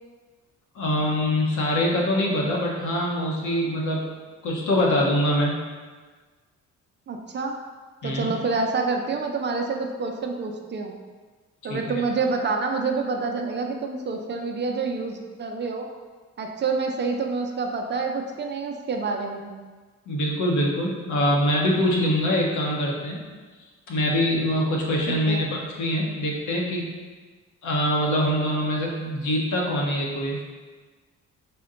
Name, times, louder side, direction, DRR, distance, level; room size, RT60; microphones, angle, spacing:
voice 1, 0.7-4.0 4.4-5.6 8.0-8.3 11.7-12.0 20.1-23.2 23.9-26.9 27.6-30.4, equal, 75° left, -2 dB, 0.9 m, -24 dB
voice 2, 7.1-7.6 8.0-10.9 11.6-15.9 16.4-19.5 25.1-25.5, right 4 dB, 35° right, 3 dB, 0.4 m, -27 dB
4.2 x 2.2 x 3.7 m, 1.4 s
cardioid pair, 90°, 30 cm